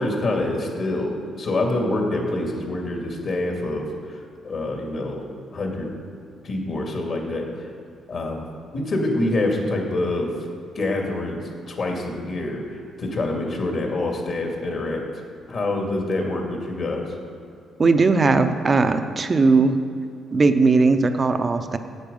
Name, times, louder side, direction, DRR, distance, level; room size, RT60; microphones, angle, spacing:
voice 1, 0.0-5.2 5.5-5.9 6.4-7.7 8.1-8.5 8.7-10.3 10.7-15.1 15.5-17.1, left 2 dB, 55° left, 1 dB, 2.2 m, -26 dB
voice 2, 17.8-19.8 20.3-21.8, right 3 dB, 35° right, 9 dB, 0.7 m, -18 dB
9.3 x 8.2 x 5.4 m, 2.4 s
cardioid pair, 90°, 0 cm